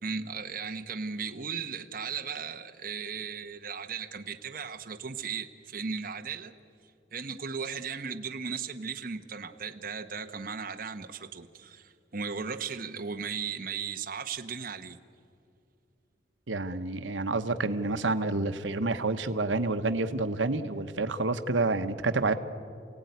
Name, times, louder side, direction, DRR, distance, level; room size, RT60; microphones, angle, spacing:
voice 1, 0.0-6.5 7.1-15.0, right 5 dB, 50° right, 5 dB, 0.9 m, -36 dB
voice 2, 16.5-22.3, right 3 dB, 85° right, 9 dB, 1.0 m, -28 dB
27.5 x 17.0 x 9.4 m, 2.5 s
head